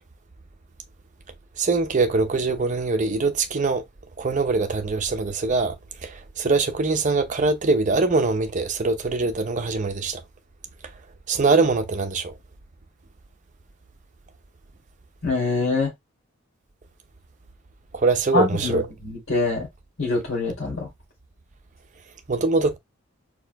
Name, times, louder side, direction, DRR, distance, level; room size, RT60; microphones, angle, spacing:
voice 1, 1.6-3.8 4.2-5.8 6.0-10.2 11.3-12.3 17.9-18.8 22.3-22.8, right 3 dB, 35° right, 0.6 m, -23 dB
voice 2, 15.2-15.9 18.3-19.7 20.0-20.9, left 3 dB, 65° left, 2.6 m, -24 dB
4.8 x 4.3 x 2.2 m
head